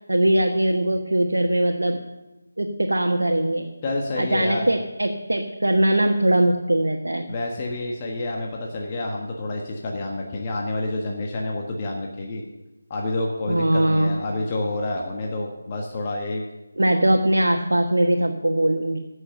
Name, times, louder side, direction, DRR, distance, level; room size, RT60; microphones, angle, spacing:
voice 1, 0.1-2.0 2.6-3.7 4.2-7.2 13.5-14.1 16.8-19.0, right 1 dB, 70° right, 2 dB, 1.3 m, -21 dB
voice 2, 3.8-4.6 7.3-12.4 12.9-16.4, left 2 dB, 25° left, 0 dB, 1.3 m, -28 dB
15.5 x 6.4 x 6.7 m, 1.1 s
figure-of-eight pair, 160°, 0 cm